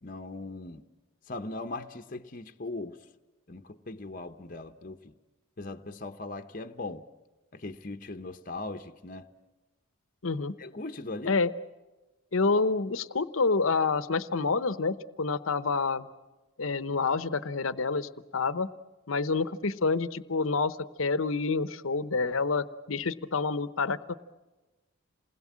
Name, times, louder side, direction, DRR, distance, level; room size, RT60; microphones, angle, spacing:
voice 1, 0.0-0.8 1.3-3.0 3.5-5.1 5.6-7.1 7.5-9.3 10.6-11.4, left 2 dB, 40° left, 0.9 m, -39 dB
voice 2, 10.2-10.5 11.3-11.5 12.3-16.1 16.6-18.7 19.1-24.1, left 4 dB, 75° left, 0.9 m, -28 dB
28.0 x 20.5 x 7.5 m
head